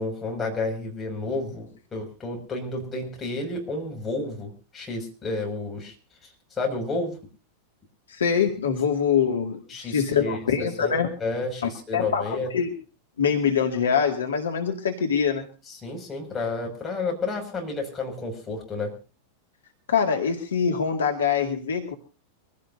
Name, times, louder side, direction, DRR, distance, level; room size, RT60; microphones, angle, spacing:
voice 1, 0.0-5.9 6.6-7.2 9.7-12.5 15.7-18.9, left 2 dB, 20° left, 1 dB, 6.2 m, -31 dB
voice 2, 8.1-11.1 11.9-12.7 13.2-15.4 19.9-21.9, left 7 dB, 65° left, 3 dB, 2.2 m, -24 dB
24.5 x 16.5 x 2.7 m, 0.35 s
figure-of-eight pair, 90°, 0 cm